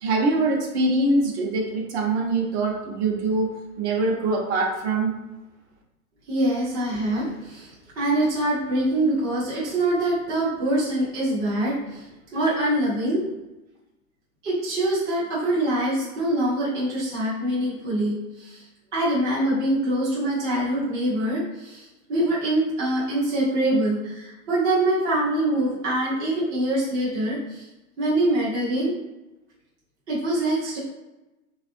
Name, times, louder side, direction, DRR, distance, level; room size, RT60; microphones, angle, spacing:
voice 1, 0.0-5.1, right 2 dB, 50° right, 0 dB, 0.7 m, -23 dB
voice 2, 6.3-13.3 14.4-18.7 18.9-27.7 28.0-28.9 30.1-30.8, right 1 dB, 20° right, -7 dB, 0.4 m, -24 dB
3.3 x 2.4 x 2.5 m, 1.0 s
hypercardioid pair, 145°, 45 cm